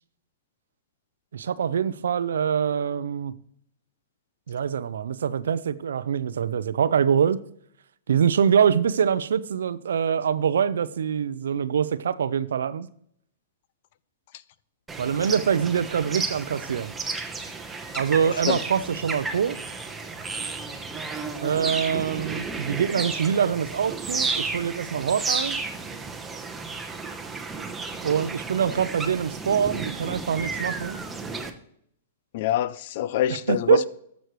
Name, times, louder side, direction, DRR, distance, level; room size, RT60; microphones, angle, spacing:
voice 1, 1.3-3.3 4.5-7.4 8.1-12.9 15.0-16.9 18.0-19.6 21.4-25.6 28.0-31.0 33.5-33.9, right 7 dB, 80° right, 0.5 m, -24 dB
sound 1, 14.9-31.5, right 4 dB, 10° right, 0.9 m, -32 dB
voice 2, 32.3-33.9, left 11 dB, 55° left, 0.5 m, -25 dB
13.5 x 6.3 x 3.1 m
hypercardioid pair, 130°, 0 cm